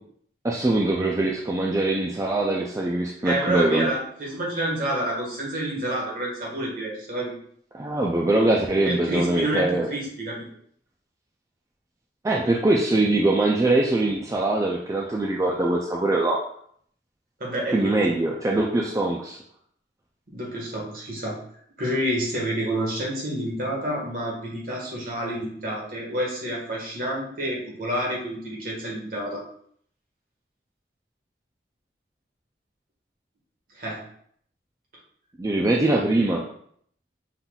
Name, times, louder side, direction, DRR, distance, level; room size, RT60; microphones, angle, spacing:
voice 1, 0.4-3.9 7.7-9.9 12.2-16.4 17.7-19.4 35.4-36.4, right 2 dB, 20° right, -1 dB, 0.3 m, -22 dB
voice 2, 3.2-7.3 8.8-10.4 17.4-18.0 20.3-21.4 21.8-29.4 33.8-34.1, right 1 dB, 50° right, -3 dB, 1.5 m, -28 dB
5.6 x 3.8 x 2.3 m, 0.64 s
head